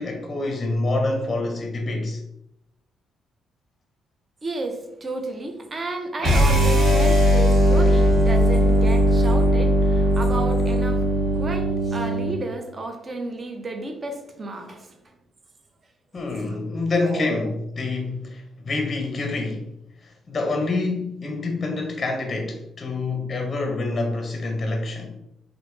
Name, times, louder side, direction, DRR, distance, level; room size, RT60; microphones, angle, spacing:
voice 1, 0.0-2.2 16.1-19.7 20.0-25.1, left 2 dB, 35° left, 0.5 m, -27 dB
voice 2, 4.4-11.0 11.3-14.9 16.5-16.6 16.9-17.4, right 2 dB, 35° right, 0.5 m, -32 dB
sound 1, 6.2-12.4, equal, 55° right, 1.4 m, -18 dB
2.9 x 2.0 x 3.1 m
cardioid pair, 90°, 0 cm